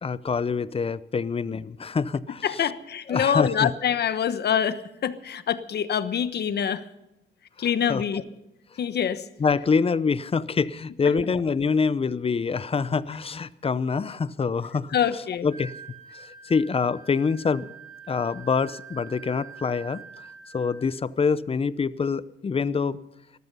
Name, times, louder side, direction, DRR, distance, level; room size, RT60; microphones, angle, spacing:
voice 1, 0.0-2.4 3.1-3.7 7.9-8.0 9.4-15.0 15.4-15.7 16.1-17.7 18.1-20.0 20.5-23.0, left 5 dB, 30° left, 18 dB, 0.7 m, -25 dB
voice 2, 2.4-6.8 7.6-8.2 8.8-9.2 14.9-15.5, left 8 dB, 55° left, 13 dB, 1.2 m, -25 dB
Wind instrument woodwind instrument, 15.5-21.0, right 6 dB, 40° right, 5.7 m, -45 dB
18.5 x 14.0 x 5.5 m, 0.91 s
cardioid pair, 90°, 20 cm